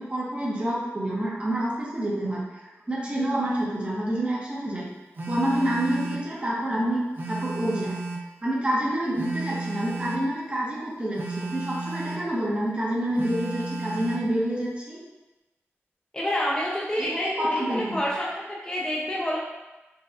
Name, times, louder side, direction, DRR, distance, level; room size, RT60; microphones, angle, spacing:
voice 1, 0.0-2.4 2.9-4.9 5.3-7.9 8.4-15.0 17.0-17.1 17.4-18.0, right 1 dB, 25° right, -6 dB, 0.8 m, -27 dB
Telephone, 5.1-6.3 7.1-8.3 9.1-10.3 11.1-12.3 13.2-14.3, right 3 dB, 45° right, 0.5 m, -33 dB
voice 2, 16.1-19.4, equal, 15° left, -5 dB, 0.5 m, -28 dB
4.1 x 2.3 x 2.4 m, 1.1 s
wide cardioid pair, 95°, 5 cm